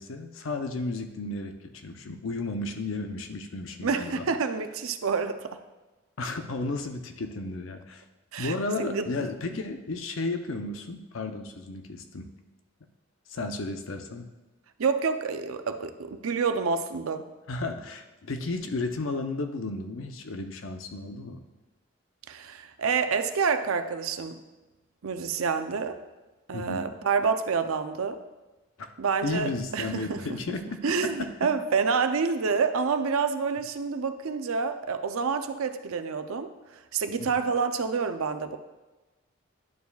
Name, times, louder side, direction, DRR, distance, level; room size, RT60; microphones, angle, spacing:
voice 1, 0.0-4.3 6.2-8.0 8.4-12.3 13.3-14.3 17.5-21.4 26.5-26.8 28.8-28.9 29.2-31.5 37.2-37.4, left 3 dB, 75° left, 6 dB, 0.7 m, -33 dB
voice 2, 3.8-5.6 8.3-9.3 14.8-17.3 22.3-24.4 25.0-26.0 26.5-28.2 29.0-30.2 30.8-36.5 36.9-38.6, right 5 dB, 85° right, 9 dB, 0.5 m, -28 dB
11.0 x 7.0 x 2.3 m, 1.1 s
head